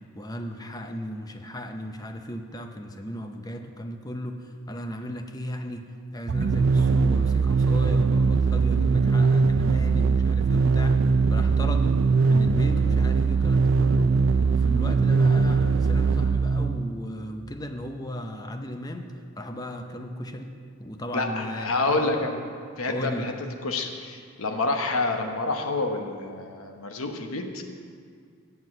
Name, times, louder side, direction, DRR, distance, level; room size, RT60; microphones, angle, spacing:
voice 1, 0.2-5.9 6.1-11.0 11.3-14.1 14.5-20.5 20.8-22.1 22.9-23.3, equal, 20° left, 6 dB, 0.6 m, -36 dB
sound 1, 6.3-17.0, right 4 dB, 60° right, 0.4 m, -21 dB
voice 2, 21.1-22.4 22.8-23.3 23.6-27.6, left 3 dB, 85° left, 4 dB, 1.0 m, -28 dB
8.0 x 7.3 x 7.6 m, 2.1 s
head